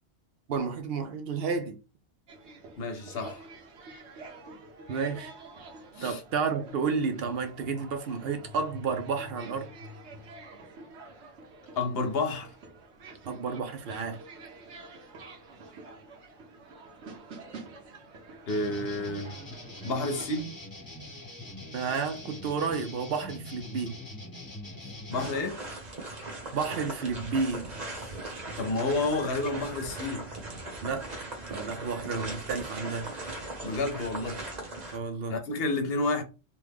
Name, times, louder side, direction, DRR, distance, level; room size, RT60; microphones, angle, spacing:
voice 1, 0.5-1.8 4.9-5.3 6.0-9.7 13.2-14.2 21.7-24.0 26.5-27.7 30.8-31.1 31.5-33.1 34.9-35.3, right 5 dB, 65° right, 0.8 m, -31 dB
sound 1, 2.3-20.4, right 2 dB, 85° right, 1.1 m, -48 dB
voice 2, 2.8-3.4 6.0-6.2 11.8-12.5 18.5-19.3 19.8-20.6 25.1-25.6 28.0-28.1 28.6-30.3 33.6-34.4 35.3-36.2, left 2 dB, 65° left, 0.9 m, -30 dB
sound 2, 18.5-25.3, left 1 dB, 20° left, 1.0 m, -43 dB
sound 3, 25.1-35.0, right 2 dB, 45° right, 0.9 m, -39 dB
3.0 x 2.2 x 3.3 m
omnidirectional pair, 1.1 m